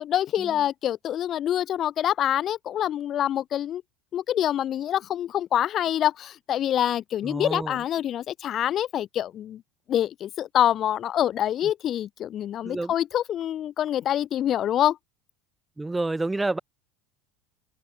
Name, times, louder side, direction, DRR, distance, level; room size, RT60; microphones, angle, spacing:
voice 1, 0.0-3.8 4.1-9.6 9.9-15.0, left 11 dB, 30° left, 1.6 m, -26 dB
voice 2, 7.2-7.8 12.6-12.9 15.8-16.6, right 2 dB, 5° right, 0.7 m, -29 dB
cardioid pair, 170°, 0 cm